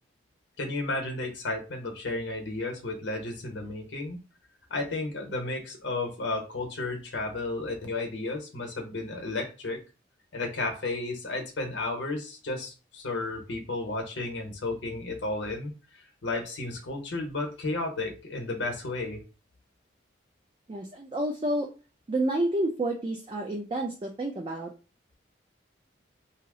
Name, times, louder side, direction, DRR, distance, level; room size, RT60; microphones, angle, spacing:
voice 1, 0.6-4.2 4.7-9.8 10.3-19.2, left 2 dB, 70° left, 2 dB, 0.8 m, -33 dB
voice 2, 20.7-21.7 22.1-24.7, right 1 dB, 25° right, 2 dB, 0.3 m, -29 dB
2.7 x 2.0 x 3.6 m, 0.33 s
head